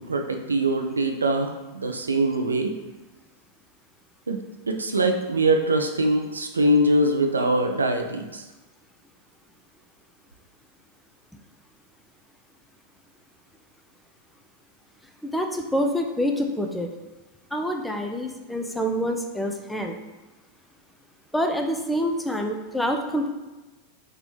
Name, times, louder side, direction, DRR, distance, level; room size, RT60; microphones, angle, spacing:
voice 1, 0.0-2.7 4.3-4.4 4.7-8.4, right 1 dB, 75° right, 5 dB, 0.4 m, -23 dB
voice 2, 15.2-16.9 17.5-20.0 21.3-23.3, equal, 5° left, 3 dB, 0.4 m, -26 dB
3.6 x 2.9 x 3.2 m, 1.2 s
figure-of-eight pair, 90°, 0 cm